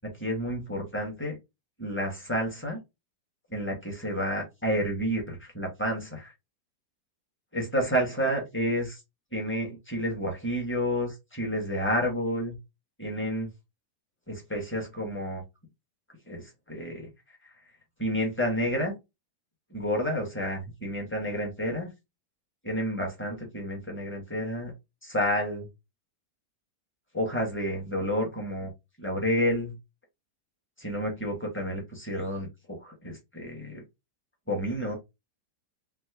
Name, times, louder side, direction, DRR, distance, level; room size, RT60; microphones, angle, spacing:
voice 1, 0.2-1.4 1.8-2.8 3.5-6.3 7.5-9.0 9.3-12.5 13.0-13.5 14.3-15.4 16.3-17.1 18.0-18.9 19.7-21.9 22.6-24.7 25.0-25.7 27.1-28.7 29.0-29.7 30.8-33.8 34.5-35.0, equal, 10° left, 0.8 m, -30 dB
3.5 x 2.1 x 3.3 m
omnidirectional pair, 1.8 m